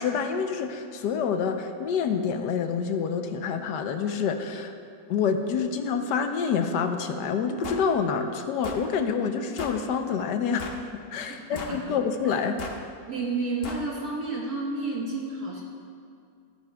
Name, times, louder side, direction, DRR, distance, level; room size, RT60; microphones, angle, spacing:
voice 1, 0.0-4.7 5.1-12.6, left 6 dB, 70° left, 6 dB, 1.2 m, -27 dB
sound 1, 7.6-7.9 8.6-8.9 9.6-9.8 10.6-10.9 11.6-11.8 12.6-12.8 13.6-13.9, left 3 dB, 50° left, 0.7 m, -37 dB
voice 2, 11.3-12.0 12.2-12.3 13.1-15.6, right 3 dB, 55° right, -3 dB, 1.7 m, -31 dB
14.5 x 13.5 x 2.3 m, 2.4 s
omnidirectional pair, 2.1 m